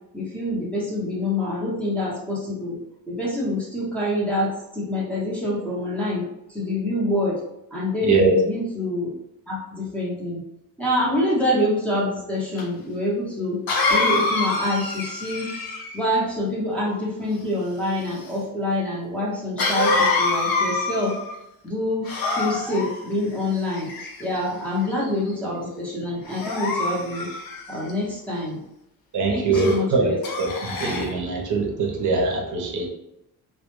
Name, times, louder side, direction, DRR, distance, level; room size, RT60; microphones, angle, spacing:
voice 1, 0.1-2.8 3.1-7.4 7.7-9.1 9.5-10.4 10.8-13.6 13.9-15.5 15.9-21.2 21.6-23.9 24.2-27.3 27.7-28.6 29.3-30.2, left 1 dB, 5° left, -8 dB, 0.6 m, -26 dB
voice 2, 8.0-8.3 29.1-30.1 30.4-32.9, right 4 dB, 55° right, -1 dB, 0.6 m, -22 dB
Cough, 12.6-12.7 13.7-16.0 19.6-21.3 22.0-22.9 23.7-24.4 25.0-25.3 26.3-27.9 29.5-29.8 30.2-31.1, left 3 dB, 80° left, 0.6 m, -25 dB
2.1 x 2.1 x 2.9 m, 0.83 s
wide cardioid pair, 170°, 35 cm